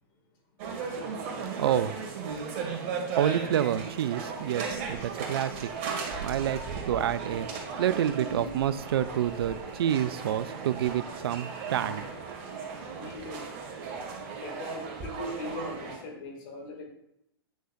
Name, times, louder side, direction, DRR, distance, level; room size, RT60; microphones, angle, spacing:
sound 1, 0.6-16.0, right 5 dB, 45° right, 2.0 m, -36 dB
voice 1, 1.6-2.0 3.1-5.7 6.2-7.5 7.8-12.0, right 10 dB, 75° right, 16 dB, 0.4 m, -28 dB
voice 2, 13.0-13.5 14.4-16.8, left 2 dB, 55° left, 2 dB, 2.4 m, -39 dB
9.2 x 6.4 x 2.6 m, 0.80 s
hypercardioid pair, 120°, 13 cm